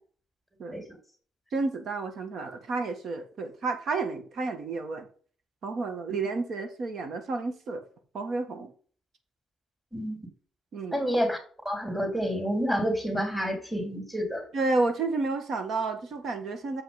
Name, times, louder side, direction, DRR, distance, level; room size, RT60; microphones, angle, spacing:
voice 1, 1.5-5.1 5.6-7.8 8.1-8.7 10.7-11.0 14.5-16.8, right 3 dB, 65° right, 7 dB, 1.7 m, -31 dB
voice 2, 9.9-10.2 10.9-11.4 11.6-14.5, equal, 5° right, 3 dB, 3.3 m, -29 dB
7.2 x 5.6 x 5.8 m, 0.44 s
cardioid pair, 90°, 0 cm